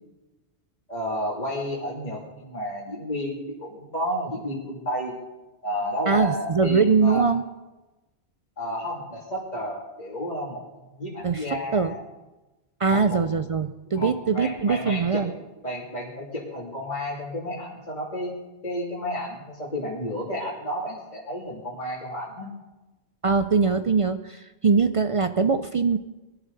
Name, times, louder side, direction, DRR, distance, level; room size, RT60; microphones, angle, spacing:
voice 1, 0.9-5.1 5.6-7.2 8.6-10.6 10.9-12.0 12.9-13.2 13.9-15.3 15.6-18.3 18.6-22.5, equal, 40° left, -5 dB, 3.0 m, -31 dB
voice 2, 6.1-7.4 11.2-11.5 11.7-11.9 12.8-15.3 23.2-26.0, right 5 dB, 65° right, 10 dB, 0.3 m, -22 dB
21.5 x 11.0 x 4.1 m, 1.1 s
omnidirectional pair, 1.2 m